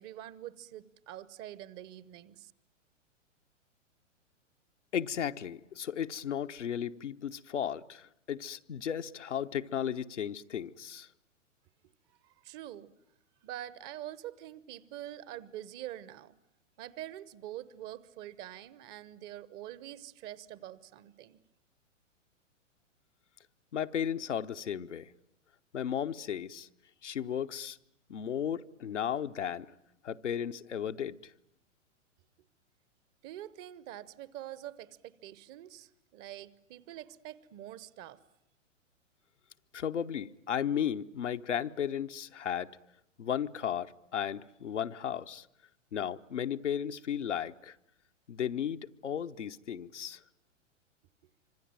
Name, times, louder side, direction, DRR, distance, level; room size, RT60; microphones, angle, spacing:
voice 1, 0.0-2.5 12.2-12.9 13.4-16.3 16.8-21.4 33.2-38.2, right 12 dB, 25° right, 1.0 m, -45 dB
voice 2, 4.9-11.1 23.7-25.1 25.7-26.7 27.0-27.8 28.1-29.7 30.0-31.3 39.7-42.8 43.2-45.5 45.9-47.8 48.3-50.2, left 9 dB, 70° left, 1.0 m, -35 dB
26.0 x 25.5 x 9.1 m
figure-of-eight pair, 110°, 38 cm